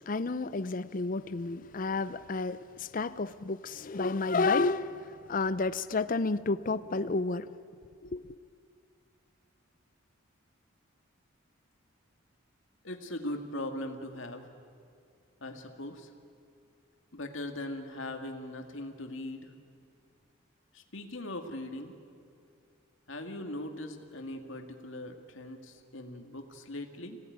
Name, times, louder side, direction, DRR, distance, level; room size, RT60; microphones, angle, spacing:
voice 1, 0.1-7.5 8.0-8.4, left 3 dB, 40° left, 0.5 m, -31 dB
voice 2, 12.8-14.5 15.4-16.1 17.1-19.5 20.7-21.9 23.1-27.2, left 1 dB, 70° left, 2.1 m, -40 dB
26.0 x 17.5 x 9.4 m
head